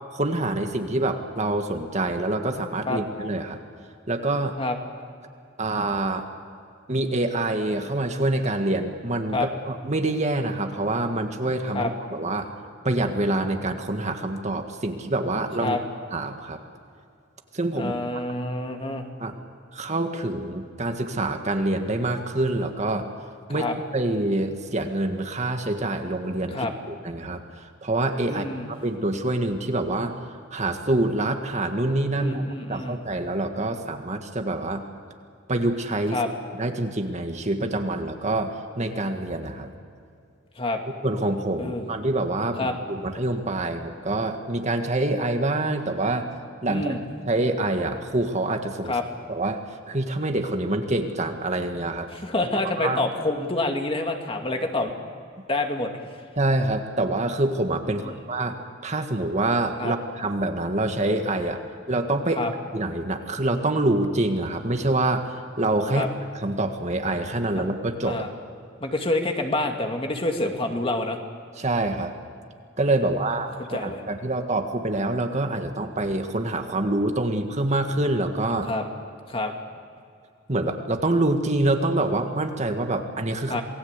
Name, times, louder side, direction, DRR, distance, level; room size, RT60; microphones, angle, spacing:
voice 1, 0.1-3.6 4.1-4.6 5.6-6.3 6.9-12.5 12.8-15.8 16.1-16.6 17.5-17.9 19.2-19.3 19.7-23.1 23.5-23.7 23.9-30.1 30.5-34.8 35.5-36.2 36.6-39.7 41.0-46.3 46.6-47.0 47.3-49.0 49.3-49.6 49.9-52.1 52.8-53.0 56.4-58.6 58.8-61.6 61.9-62.5 62.7-66.1 66.3-68.3 71.6-72.1 72.8-78.7 80.5-83.6, right 2 dB, 35° right, 5 dB, 1.8 m, -26 dB
voice 2, 17.8-19.0 23.5-23.7 26.5-26.7 28.3-28.7 32.2-33.0 36.1-36.3 40.6-40.8 41.6-41.9 42.6-42.7 46.7-47.0 48.9-49.0 52.2-54.9 55.5-55.9 58.0-58.1 59.8-59.9 62.4-62.5 65.9-66.1 68.1-68.3 68.8-71.2 73.7-74.0 78.7-78.8 79.3-79.5 83.5-83.6, left 2 dB, 30° left, 3 dB, 2.4 m, -27 dB
28.0 x 19.5 x 8.3 m, 2.4 s
head